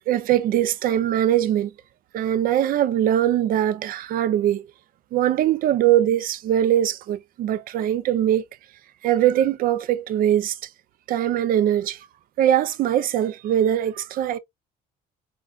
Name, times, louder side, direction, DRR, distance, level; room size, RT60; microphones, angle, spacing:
voice 1, 0.1-1.7 2.1-4.6 5.1-8.5 9.0-10.6 11.1-12.0 12.4-14.4, right 11 dB, 60° right, 0.4 m, -21 dB
3.5 x 2.2 x 2.3 m
cardioid pair, 110°, 17 cm